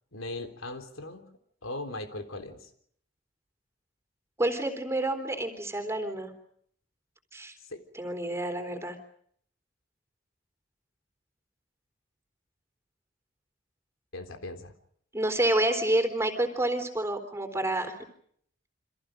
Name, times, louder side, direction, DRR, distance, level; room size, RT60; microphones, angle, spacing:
voice 1, 0.1-1.3 1.6-2.7 7.7-7.8 14.1-14.7, left 2 dB, 90° left, 7 dB, 3.7 m, -38 dB
voice 2, 4.4-6.3 7.3-7.5 7.9-9.0 15.1-18.0, right 1 dB, 15° right, 7 dB, 3.7 m, -28 dB
29.5 x 26.0 x 5.2 m, 0.65 s
head